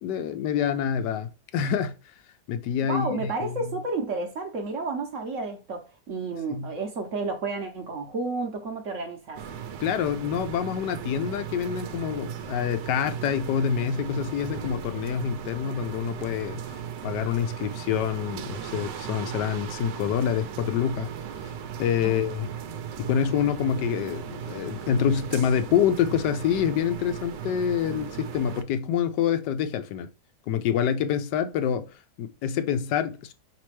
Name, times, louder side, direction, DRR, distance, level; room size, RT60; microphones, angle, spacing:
voice 1, 0.0-2.0 2.5-3.6 6.5-6.7 9.8-16.6 17.0-21.1 21.8-22.5 23.0-30.1 30.5-31.9 32.2-33.3, left 8 dB, 80° left, 1.2 m, -26 dB
voice 2, 2.8-9.4 22.0-22.2, right 3 dB, 60° right, 0.9 m, -31 dB
sound 1, 9.4-28.6, right 8 dB, 85° right, 1.2 m, -37 dB
4.2 x 3.3 x 3.1 m
omnidirectional pair, 1.8 m